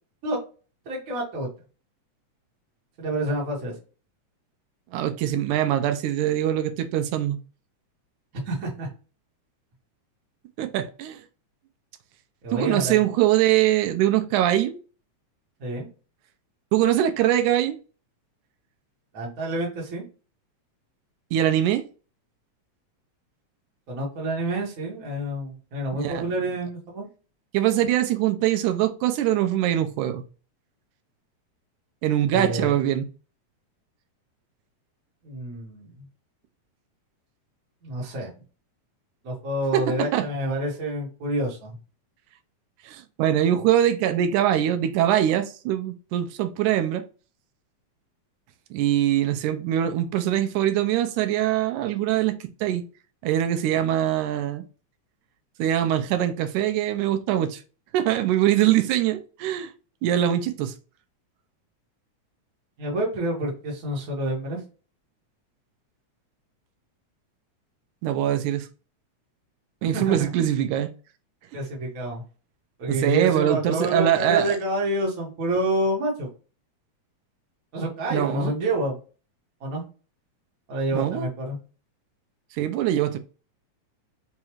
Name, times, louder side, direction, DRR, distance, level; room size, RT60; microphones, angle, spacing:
voice 1, 0.8-1.5 3.0-3.7 8.3-8.9 12.4-13.0 15.6-15.9 19.1-20.0 23.9-27.1 32.3-32.7 35.2-35.9 37.8-38.3 39.2-41.8 62.8-64.6 69.9-70.2 71.5-72.2 72.8-76.3 77.7-79.0 79.6-79.8 80.7-81.6, right 1 dB, 40° right, 1.2 m, -28 dB
voice 2, 4.9-7.4 10.6-11.2 12.5-14.8 16.7-17.8 21.3-21.8 26.0-26.3 27.5-30.2 32.0-33.1 39.7-40.3 42.9-47.0 48.7-52.8 53.2-54.6 55.6-57.6 57.9-59.7 60.0-60.7 68.0-68.7 69.8-70.9 72.9-74.6 78.1-78.5 80.9-81.3 82.6-83.2, right 11 dB, 90° right, 2.1 m, -23 dB
5.2 x 2.4 x 3.0 m
omnidirectional pair, 3.4 m